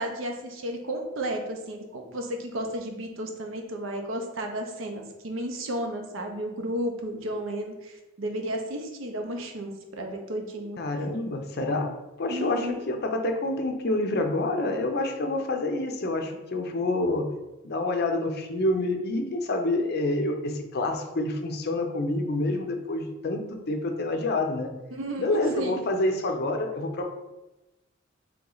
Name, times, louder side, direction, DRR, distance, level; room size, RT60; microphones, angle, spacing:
voice 1, 0.0-10.8 12.3-12.8 24.9-25.8, right 1 dB, 70° right, 3 dB, 0.6 m, -33 dB
voice 2, 10.8-17.3 17.6-24.7 25.2-27.1, left 2 dB, 50° left, 5 dB, 0.5 m, -27 dB
3.3 x 3.0 x 3.8 m, 1.0 s
head